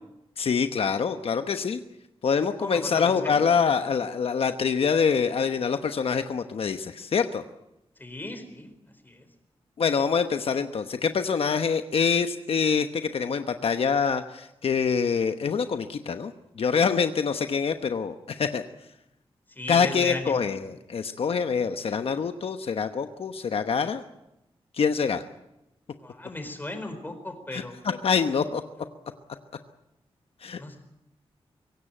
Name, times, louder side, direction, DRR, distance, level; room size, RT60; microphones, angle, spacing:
voice 1, 0.4-1.8 2.2-7.4 9.8-18.6 19.7-24.0 24.7-25.2 27.5-28.6 30.4-30.6, left 6 dB, 70° left, 8 dB, 1.0 m, -25 dB
voice 2, 2.5-3.4 8.0-8.7 9.0-9.3 19.5-20.3 26.0-27.8 30.6-30.8, left 2 dB, 20° left, 7 dB, 4.4 m, -36 dB
24.0 x 17.0 x 9.0 m, 0.90 s
wide cardioid pair, 125°, 10 cm